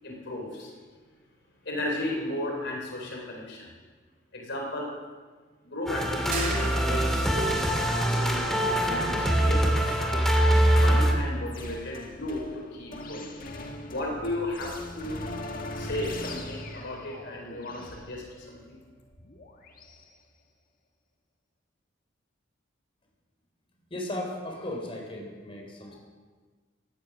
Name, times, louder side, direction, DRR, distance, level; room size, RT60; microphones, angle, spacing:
voice 1, 0.0-0.7 1.6-3.7 4.3-4.9 5.6-10.3 10.8-13.3 13.9-15.2 15.7-18.8, left 1 dB, 65° left, 0 dB, 3.8 m, -35 dB
sound 1, 5.9-11.1, right 1 dB, ahead, 2.3 m, -23 dB
sound 2, 6.3-7.4, right 5 dB, 50° right, 2.6 m, -35 dB
sound 3, 10.3-20.0, left 1 dB, 45° left, 1.7 m, -41 dB
voice 2, 23.9-26.0, left 1 dB, 30° left, 0 dB, 3.9 m, -36 dB
16.5 x 11.5 x 6.3 m, 1.4 s
head